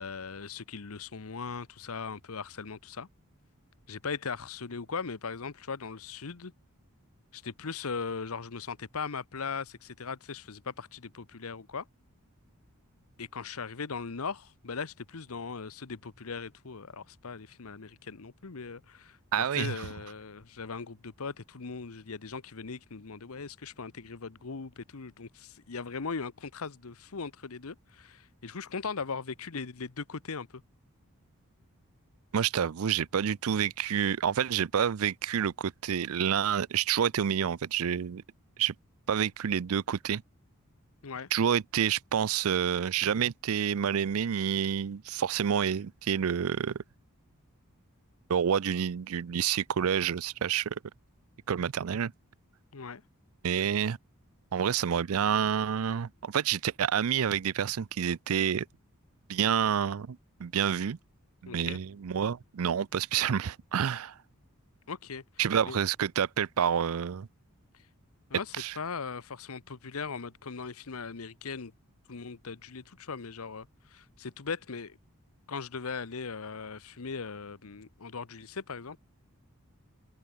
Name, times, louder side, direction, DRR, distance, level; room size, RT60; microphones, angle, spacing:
voice 1, 0.0-3.1 3.9-6.5 7.3-11.9 13.2-30.6 41.0-41.3 52.7-53.0 61.5-61.8 64.9-65.2 65.7-65.8 68.3-71.7 72.1-75.0 75.5-79.0, left 5 dB, 75° left, 0.9 m, -39 dB
voice 2, 19.3-19.9 32.3-38.2 38.6-38.7 39.1-40.2 41.3-46.8 48.3-50.8 51.5-52.1 53.4-54.0 54.5-58.7 59.3-61.0 61.4-64.2 65.4-67.3 68.6-68.7, right 8 dB, 70° right, 0.5 m, -28 dB
open air
head